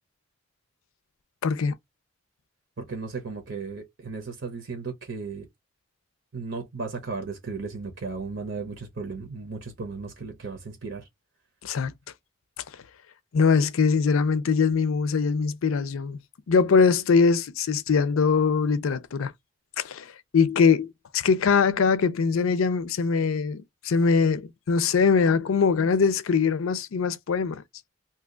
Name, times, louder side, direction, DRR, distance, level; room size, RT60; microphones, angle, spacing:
voice 1, 1.4-1.8 11.6-11.9 13.3-16.2 16.5-19.3 19.8-27.6, left 5 dB, 80° left, 0.5 m, -22 dB
voice 2, 2.8-5.5 6.3-11.0, right 4 dB, 60° right, 0.7 m, -35 dB
2.7 x 2.3 x 3.7 m
head